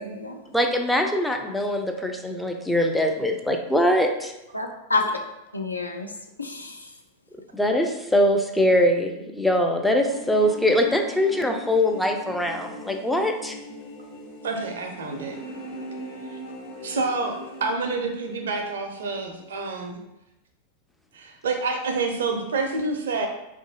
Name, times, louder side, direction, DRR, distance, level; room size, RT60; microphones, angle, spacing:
voice 1, 0.0-0.4 4.5-5.1 5.5-6.1 6.4-6.9, left 3 dB, 80° left, 3 dB, 0.3 m, -28 dB
voice 2, 0.5-4.3 7.5-13.6, left 1 dB, 5° left, 3 dB, 0.3 m, -22 dB
sound 1, 10.1-17.7, left 1 dB, 50° left, 0.9 m, -39 dB
voice 3, 14.4-15.4 16.8-20.0 21.1-23.3, right 3 dB, 65° right, 4 dB, 0.4 m, -28 dB
3.1 x 2.4 x 2.6 m, 0.91 s
figure-of-eight pair, 90°, 0 cm